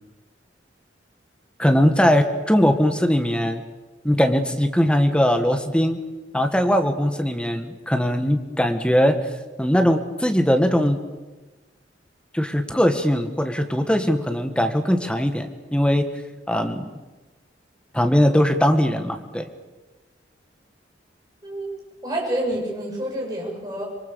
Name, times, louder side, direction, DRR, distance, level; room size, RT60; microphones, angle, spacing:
voice 1, 1.6-3.6 4.0-6.0 6.3-9.2 9.6-11.0 12.3-16.1 16.5-16.9 17.9-19.4, equal, 5° left, 6 dB, 1.8 m, -20 dB
voice 2, 22.0-23.8, right 1 dB, 20° right, -3 dB, 7.8 m, -28 dB
25.5 x 23.0 x 7.1 m, 1.2 s
head